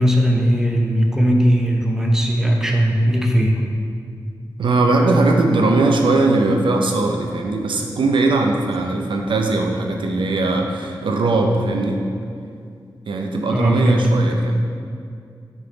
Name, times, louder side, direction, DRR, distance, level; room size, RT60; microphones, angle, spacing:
voice 1, 0.0-3.6 13.5-14.1, equal, 5° right, 1 dB, 0.7 m, -18 dB
voice 2, 4.6-12.0 13.1-14.6, right 2 dB, 90° right, 2 dB, 0.5 m, -19 dB
6.7 x 3.7 x 3.9 m, 2.3 s
wide cardioid pair, 75°, 8 cm